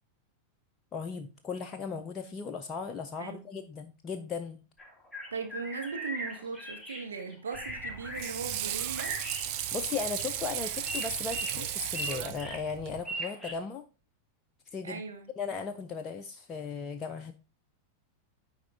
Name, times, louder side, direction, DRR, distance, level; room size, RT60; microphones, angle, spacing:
voice 1, 0.9-4.6 9.7-13.8 14.7-15.0 15.4-17.3, left 5 dB, 25° left, 0.6 m, -37 dB
sound 1, 4.8-13.5, right 1 dB, ahead, 1.7 m, -40 dB
voice 2, 5.3-9.2 14.8-15.3, right 5 dB, 70° right, 0.9 m, -38 dB
Water / Sink (filling or washing), 7.5-13.0, right 11 dB, 45° right, 0.7 m, -35 dB
9.8 x 3.7 x 3.3 m
figure-of-eight pair, 90°, 0 cm